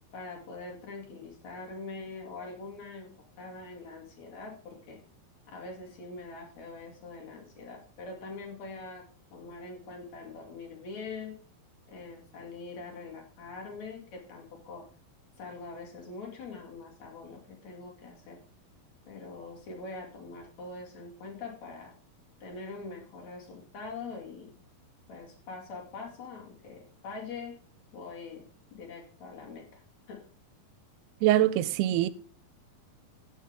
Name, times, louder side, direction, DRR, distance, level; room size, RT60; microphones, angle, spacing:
voice 1, 0.1-3.1 3.4-5.0 5.5-9.0 9.3-11.4 11.9-14.9 15.4-18.4 19.1-21.9 22.4-24.6 25.1-27.5 27.9-29.8 30.1-30.3, left 3 dB, 50° left, 3.2 m, -43 dB
voice 2, 31.2-32.1, right 14 dB, 90° right, 2.6 m, -23 dB
15.5 x 6.5 x 3.6 m
omnidirectional pair, 4.5 m